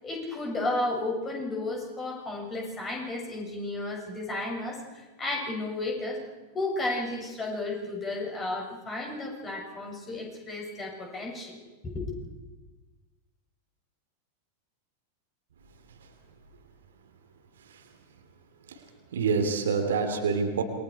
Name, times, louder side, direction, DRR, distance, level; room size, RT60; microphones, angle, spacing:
voice 1, 0.0-6.2 6.5-11.6 11.8-12.1, left 2 dB, 20° left, 0 dB, 7.2 m, -33 dB
voice 2, 17.6-17.9 18.6-20.6, right 5 dB, 65° right, 5 dB, 2.9 m, -28 dB
28.0 x 22.5 x 4.9 m, 1.2 s
figure-of-eight pair, 90°, 0 cm